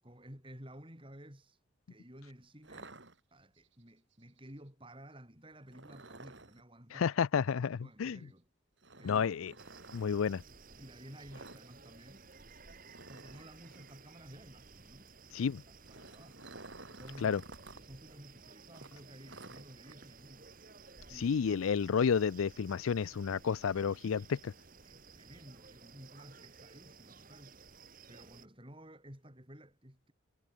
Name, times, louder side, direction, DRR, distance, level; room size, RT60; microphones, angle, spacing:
voice 1, 0.0-1.6 1.9-3.0 3.3-7.1 7.8-8.5 9.0-9.3 10.8-12.3 13.1-15.1 15.9-16.4 16.9-17.4 17.7-20.5 21.1-21.4 24.2-24.3 24.8-27.6 28.1-30.1, equal, 25° right, 6.2 m, -53 dB
sound 1, 2.6-3.7 5.7-6.6 8.8-10.1 11.3-11.7 11.9-12.1 12.4-12.5 12.9-14.0 15.6-17.8 18.1-18.2 18.7-20.0, right 2 dB, 60° right, 4.5 m, -52 dB
voice 2, 7.0-8.2 9.0-9.5 9.9-10.4 15.3-15.6 17.2-17.4 21.2-24.5, left 6 dB, 85° left, 0.4 m, -31 dB
sound 2, 9.6-28.5, right 4 dB, 40° right, 3.4 m, -56 dB
head